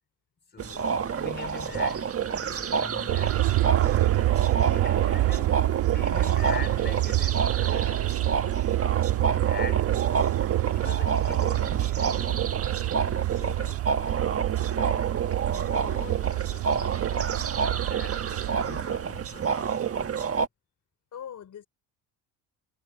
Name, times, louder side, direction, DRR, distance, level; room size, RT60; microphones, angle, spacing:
voice 1, 0.5-3.5 4.7-8.1 9.2-10.0 10.7-12.6 15.3-20.4, left 5 dB, 25° left, 4.4 m, -43 dB
sound 1, 0.6-20.5, right 6 dB, 35° right, 1.5 m, -29 dB
Aircraft, 3.1-19.3, right 16 dB, 85° right, 2.4 m, -27 dB
voice 2, 4.9-5.3 12.9-13.8 14.7-15.0 21.1-21.7, left 9 dB, 45° left, 4.1 m, -44 dB
cardioid pair, 140°, 42 cm